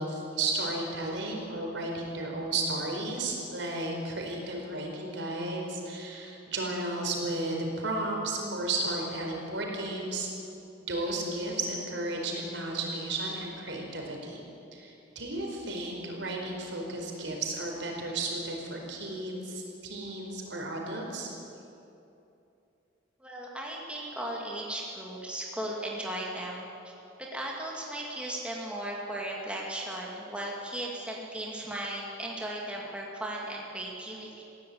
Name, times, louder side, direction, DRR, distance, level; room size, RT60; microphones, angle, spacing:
voice 1, 0.0-10.3 10.9-14.4 14.7-21.3, right 2 dB, 70° right, 0 dB, 4.6 m, -33 dB
voice 2, 23.2-26.9 27.2-34.4, right 1 dB, 5° right, -3 dB, 2.4 m, -36 dB
21.0 x 16.0 x 8.6 m, 2.8 s
head